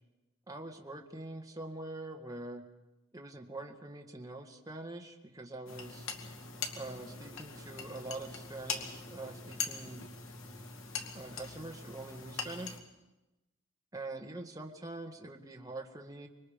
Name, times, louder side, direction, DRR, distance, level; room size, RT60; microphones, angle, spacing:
voice 1, 0.5-2.6 3.1-6.1 6.7-10.0 11.1-12.8 13.9-16.3, right 2 dB, 15° right, 2 dB, 1.8 m, -44 dB
sound 1, 5.7-12.8, left 5 dB, 65° left, 2.3 m, -42 dB
26.0 x 23.0 x 5.2 m, 1.0 s
head